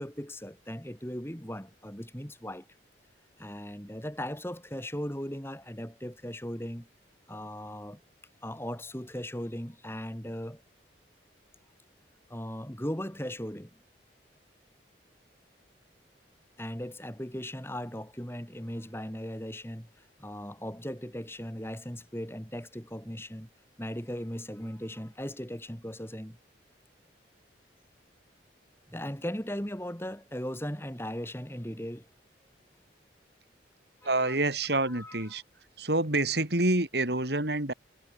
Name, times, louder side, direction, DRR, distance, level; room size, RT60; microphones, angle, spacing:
voice 1, 0.0-2.7 3.4-6.9 7.3-8.0 8.4-10.6 12.3-13.7 16.6-23.5 23.8-26.4 28.9-32.1 34.0-34.4 34.9-35.3, equal, 15° left, 5.6 m, -38 dB
voice 2, 34.0-35.4 35.8-37.7, right 2 dB, 65° right, 3.8 m, -27 dB
head